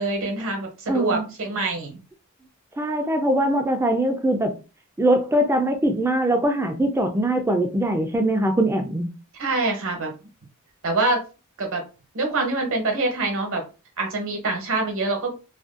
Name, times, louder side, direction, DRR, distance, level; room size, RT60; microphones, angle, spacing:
voice 1, 0.0-2.0 9.4-10.1 10.8-11.2 11.6-11.8 12.1-13.6 14.0-15.3, right 2 dB, 60° right, 0.8 m, -25 dB
voice 2, 0.9-1.2 2.8-4.5 5.0-9.1, right 1 dB, 10° right, 0.3 m, -22 dB
2.5 x 2.2 x 2.4 m
head